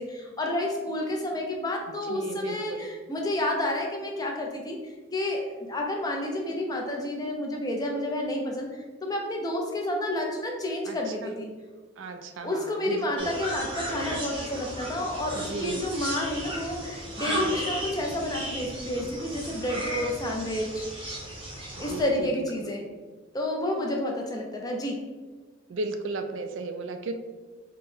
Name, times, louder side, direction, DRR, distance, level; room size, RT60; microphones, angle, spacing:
voice 1, 0.0-4.8 5.1-11.5 12.4-20.9 21.8-22.9 23.3-25.0, left 1 dB, 20° left, 1 dB, 0.4 m, -30 dB
voice 2, 2.1-2.9 10.9-11.3 12.0-13.4 15.3-15.8 17.3-17.5 21.8-22.7 25.7-27.1, right 3 dB, 70° right, 6 dB, 0.4 m, -35 dB
sound 1, 13.2-22.0, equal, 25° right, 0.7 m, -35 dB
4.4 x 2.1 x 3.2 m, 1.4 s
head